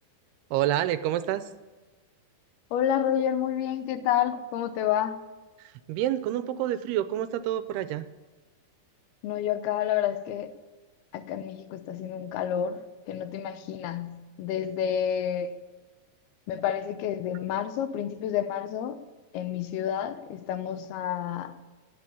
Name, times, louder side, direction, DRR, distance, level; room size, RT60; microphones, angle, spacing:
voice 1, 0.5-1.5 5.9-8.1, right 12 dB, 80° right, 13 dB, 2.6 m, -28 dB
voice 2, 2.7-5.2 9.2-10.5 11.1-15.6 16.5-19.0 19.3-21.6, left 10 dB, 80° left, 11 dB, 2.7 m, -29 dB
18.0 x 7.1 x 9.8 m, 1.3 s
omnidirectional pair, 4.6 m